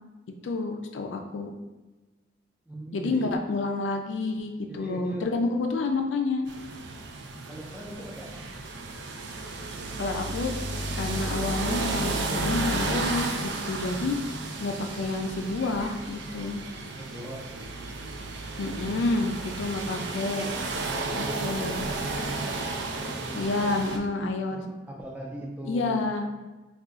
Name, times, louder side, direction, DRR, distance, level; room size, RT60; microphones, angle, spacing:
voice 1, 0.4-1.5 2.9-6.5 10.0-10.5 10.9-14.1 14.6-16.6 18.6-20.5 21.2-21.9 23.3-24.6 25.7-26.3, left 3 dB, 85° left, 4 dB, 0.4 m, -29 dB
voice 2, 2.7-3.4 4.7-5.3 7.5-8.4 16.9-17.5 20.8-22.4 23.0-24.6 24.9-26.0, right 1 dB, 10° right, -3 dB, 0.4 m, -40 dB
sound 1, 6.5-24.0, right 2 dB, 70° right, 0.3 m, -33 dB
2.4 x 2.3 x 3.8 m, 1.1 s
head